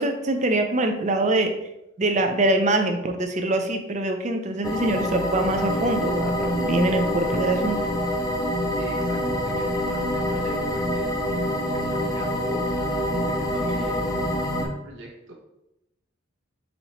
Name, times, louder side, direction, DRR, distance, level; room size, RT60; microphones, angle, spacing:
voice 1, 0.0-1.5 2.0-7.8, right 2 dB, 35° right, 6 dB, 0.5 m, -24 dB
sound 1, 4.6-14.7, left 1 dB, 20° left, 0.5 m, -26 dB
voice 2, 8.8-15.3, equal, 65° right, -1 dB, 0.8 m, -41 dB
4.2 x 2.8 x 4.3 m, 0.88 s
head